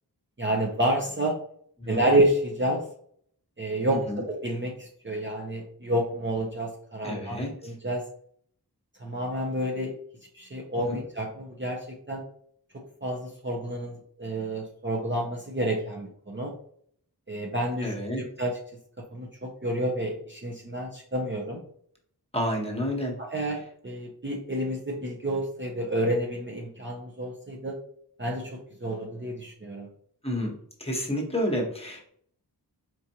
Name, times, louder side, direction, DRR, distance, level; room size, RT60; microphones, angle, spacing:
voice 1, 0.4-1.4 1.9-2.8 3.6-4.0 4.3-8.0 9.0-9.9 10.3-12.2 13.0-16.5 17.3-17.9 18.4-18.5 19.1-21.6 23.2-27.8 28.2-29.9, right 1 dB, 30° right, -1 dB, 0.6 m, -29 dB
voice 2, 7.0-7.7 10.9-11.0 17.8-18.2 22.3-23.2 30.2-30.5 30.8-32.1, equal, 15° left, -1 dB, 1.1 m, -30 dB
4.5 x 2.5 x 2.8 m, 0.63 s
wide cardioid pair, 50°, 39 cm